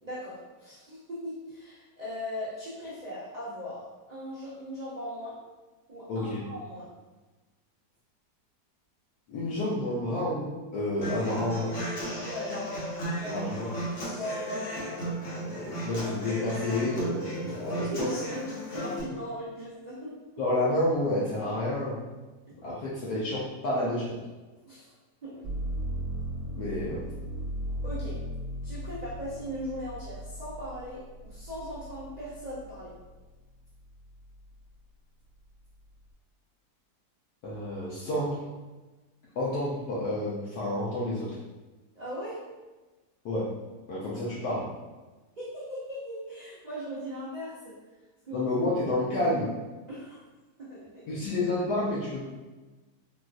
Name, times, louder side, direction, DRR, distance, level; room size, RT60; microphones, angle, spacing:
voice 1, 0.0-5.4 5.9-6.9 12.2-12.7 13.0-13.5 13.8-14.9 17.4-20.4 24.6-24.9 25.2-25.5 27.8-28.2 28.6-32.9 41.9-42.4 44.1-44.4 45.4-47.8 48.2-48.5 49.9-50.2 50.6-51.3, equal, 65° right, -9 dB, 0.4 m, -39 dB
voice 2, 6.1-6.4 9.3-11.7 13.3-13.7 15.0-17.8 20.4-22.1 22.6-24.2 26.6-27.0 37.4-38.4 39.4-41.3 43.2-43.4 43.9-44.7 48.3-49.5 51.1-52.2, left 1 dB, 75° left, -7 dB, 1.2 m, -30 dB
Human voice / Acoustic guitar, 11.0-19.0, equal, 50° left, 1.1 m, -35 dB
sound 1, 25.4-33.2 33.7-34.5, right 1 dB, 35° right, 0.9 m, -37 dB
4.0 x 2.3 x 2.3 m, 1.2 s
omnidirectional pair, 1.8 m